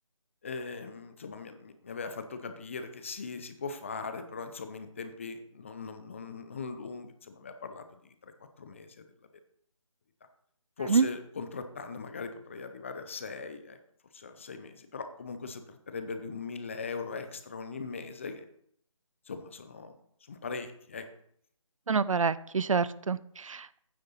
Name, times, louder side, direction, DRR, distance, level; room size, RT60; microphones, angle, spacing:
voice 1, 0.4-9.1 10.8-13.8 14.1-18.4 19.3-19.9 20.3-21.1, left 4 dB, 25° left, 8 dB, 0.6 m, -40 dB
voice 2, 21.9-23.8, right 5 dB, 75° right, 18 dB, 0.5 m, -27 dB
9.4 x 6.4 x 5.7 m, 0.68 s
figure-of-eight pair, 165°, 17 cm